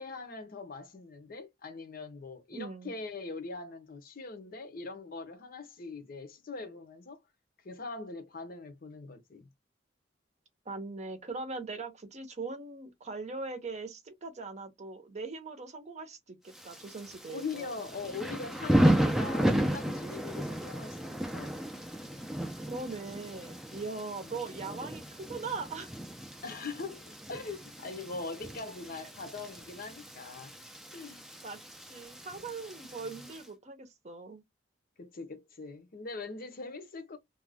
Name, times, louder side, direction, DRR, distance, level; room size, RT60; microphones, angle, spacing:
voice 1, 0.0-7.2 7.6-9.5 17.3-21.6 24.2-24.4 26.4-30.5 30.9-31.3 33.0-33.2 35.0-37.2, left 4 dB, 55° left, 0.7 m, -42 dB
voice 2, 2.5-2.9 10.7-17.8 22.7-25.9 31.4-31.6 31.9-34.4, right 3 dB, 40° right, 0.7 m, -40 dB
Thunder / Rain, 16.5-33.4, equal, ahead, 0.4 m, -33 dB
2.5 x 2.2 x 3.3 m
head